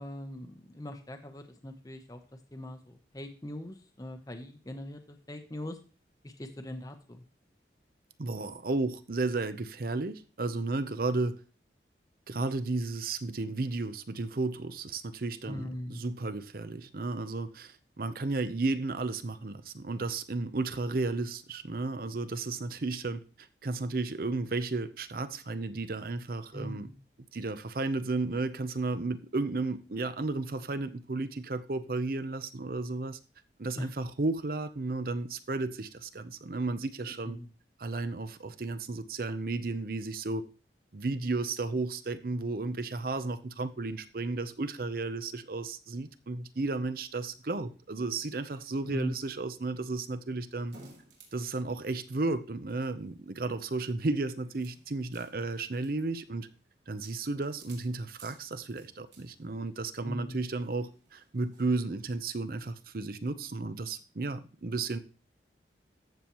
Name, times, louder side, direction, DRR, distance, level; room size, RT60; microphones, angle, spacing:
voice 1, 0.0-2.2 2.5-5.8 6.2-7.2 15.5-16.0 26.5-26.9 33.8-33.9 37.0-37.5 48.9-49.1 60.0-60.4, left 1 dB, 20° left, 0.7 m, -41 dB
voice 2, 8.2-11.4 12.3-26.9 27.3-33.2 33.6-37.4 37.8-40.4 40.9-50.8 51.3-56.5 56.9-65.0, right 3 dB, 50° right, 0.6 m, -33 dB
sound 1, 48.1-62.7, right 3 dB, 80° right, 3.4 m, -61 dB
14.0 x 7.0 x 3.0 m
head